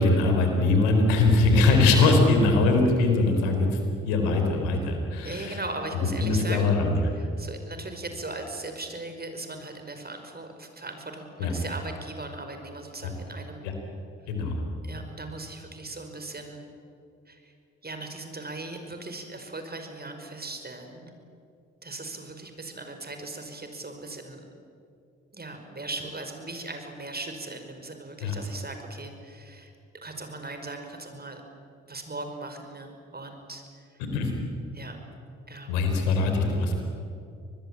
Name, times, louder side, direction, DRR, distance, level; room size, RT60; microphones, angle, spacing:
voice 1, 0.0-3.7 4.1-5.6 6.2-6.9 11.4-11.5 13.0-13.1 13.6-13.7 14.3-14.6 28.2-28.3 34.1-34.3 35.7-36.8, left 3 dB, 85° left, 4 dB, 4.1 m, -22 dB
voice 2, 5.2-6.7 7.1-13.6 14.8-16.7 17.3-17.5 17.8-21.1 21.8-24.5 25.3-29.7 30.0-31.4 31.9-33.8 34.7-35.0 35.5-35.7, right 2 dB, 30° right, 6 dB, 5.5 m, -38 dB
25.5 x 20.5 x 9.0 m, 2.6 s
hypercardioid pair, 45°, 33 cm